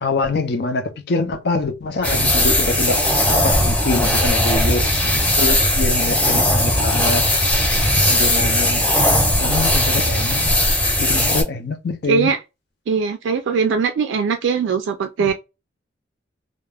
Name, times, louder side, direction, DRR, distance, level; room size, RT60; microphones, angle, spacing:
voice 1, 0.0-3.0 3.3-4.9 5.4-7.3 8.1-8.9 9.4-10.6 11.0-12.3 15.2-15.3, left 3 dB, 60° left, 0.5 m, -24 dB
sound 1, 2.0-11.4, left 1 dB, 10° left, 0.7 m, -18 dB
voice 2, 12.1-12.4 12.9-15.3, right 5 dB, 85° right, 0.3 m, -20 dB
2.3 x 2.0 x 3.2 m
head